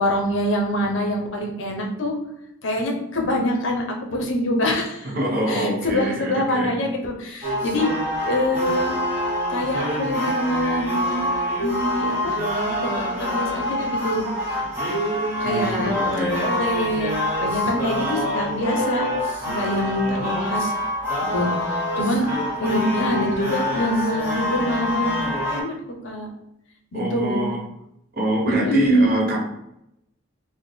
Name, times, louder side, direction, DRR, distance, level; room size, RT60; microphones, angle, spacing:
voice 1, 0.0-2.2 2.6-5.1 5.5-7.9 8.2-9.2 9.5-12.4 12.8-12.9 13.2-14.6 15.4-15.9 16.2-17.1 17.4-19.1 19.4-20.7 21.3-22.3 22.6-25.8 26.0-26.3 26.9-27.5 28.5-29.2, equal, 70° left, 1 dB, 0.7 m, -25 dB
voice 2, 5.0-6.8 15.4-16.4 26.9-27.6 28.1-29.4, equal, 45° right, -1 dB, 0.8 m, -25 dB
sound 1, 7.4-25.6, left 1 dB, 10° right, 0.9 m, -26 dB
4.1 x 2.1 x 3.2 m, 0.80 s
head